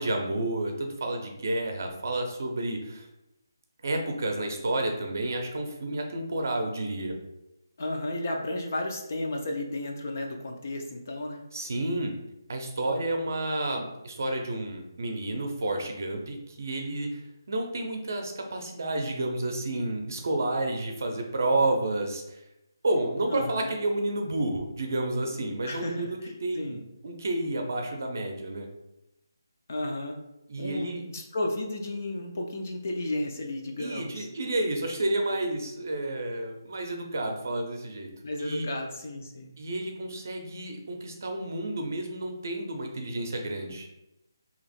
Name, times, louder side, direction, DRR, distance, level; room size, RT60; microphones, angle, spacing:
voice 1, 0.0-3.0 3.8-7.2 11.5-12.1 12.5-17.2 17.5-22.4 22.8-28.7 30.5-31.0 33.8-38.1 38.4-38.7 39.6-43.9, right 2 dB, 45° right, 3 dB, 0.6 m, -30 dB
voice 2, 7.8-11.4 23.3-23.7 25.6-26.8 29.7-30.2 30.6-34.3 38.2-39.5, left 1 dB, 35° left, 2 dB, 0.5 m, -33 dB
2.9 x 2.9 x 4.2 m, 0.90 s
hypercardioid pair, 175°, 2 cm